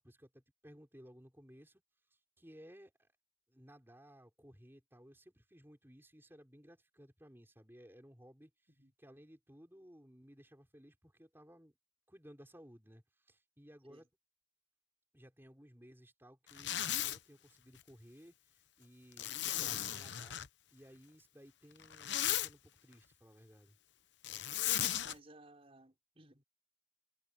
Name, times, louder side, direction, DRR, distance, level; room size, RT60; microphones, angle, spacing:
voice 1, 0.0-1.8 2.1-3.1 3.5-8.7 9.0-11.7 12.1-14.1 15.1-20.4 20.7-23.8, equal, 10° right, 4.8 m, -59 dB
Zipper (clothing), 16.5-17.2 19.2-20.5 21.8-22.5 24.2-25.1, left 12 dB, 60° left, 0.9 m, -36 dB
voice 2, 25.0-26.4, right 2 dB, 30° right, 5.9 m, -59 dB
head